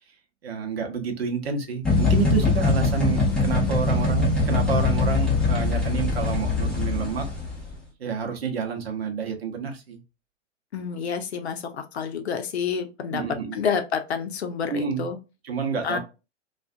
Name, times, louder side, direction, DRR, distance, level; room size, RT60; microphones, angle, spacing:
voice 1, 0.4-7.2 8.0-10.0 13.1-13.6 14.7-15.1 15.4-16.0, right 5 dB, 55° right, 4 dB, 0.8 m, -29 dB
sound 1, 1.9-7.7, left 3 dB, ahead, 0.6 m, -22 dB
voice 2, 10.7-13.2 13.5-15.2 15.8-16.0, left 6 dB, 60° left, 7 dB, 0.7 m, -29 dB
2.4 x 2.4 x 2.5 m, 0.28 s
figure-of-eight pair, 105°, 37 cm